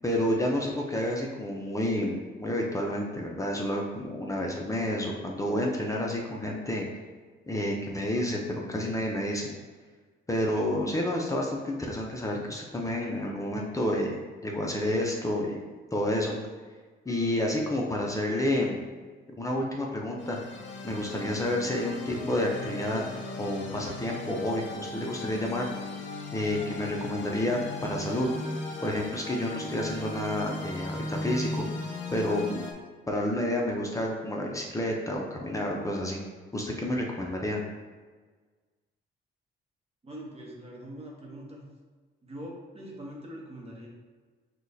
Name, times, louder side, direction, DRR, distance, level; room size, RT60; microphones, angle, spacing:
voice 1, 0.0-6.9 7.5-9.5 10.3-15.6 15.9-16.4 17.1-18.8 19.4-20.4 20.8-23.0 23.4-25.7 26.3-28.3 28.8-31.6 32.1-32.6 33.1-36.2 36.5-37.6, left 1 dB, 15° left, -1 dB, 0.6 m, -29 dB
sound 1, 20.2-32.7, left 2 dB, 75° left, 0.7 m, -38 dB
voice 2, 40.0-41.6 42.2-43.9, equal, 30° right, -2 dB, 1.0 m, -42 dB
6.0 x 2.4 x 2.7 m, 1.4 s
cardioid pair, 90°, 20 cm